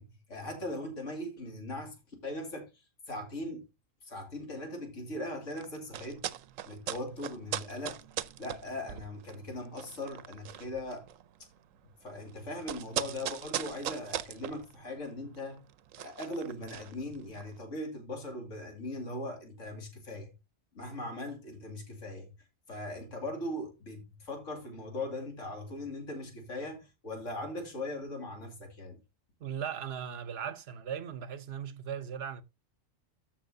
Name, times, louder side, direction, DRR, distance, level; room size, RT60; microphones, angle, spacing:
voice 1, 0.0-2.0 2.2-2.7 3.1-3.6 4.0-6.3 6.6-8.0 8.4-11.0 12.0-15.6 16.0-20.3 20.7-22.3 22.7-29.0, left 1 dB, 75° left, 2.7 m, -39 dB
sound 1, 5.4-17.6, right 11 dB, 90° right, 1.0 m, -40 dB
voice 2, 29.4-32.4, right 8 dB, 60° right, 0.9 m, -38 dB
13.5 x 5.7 x 2.7 m
omnidirectional pair, 1.3 m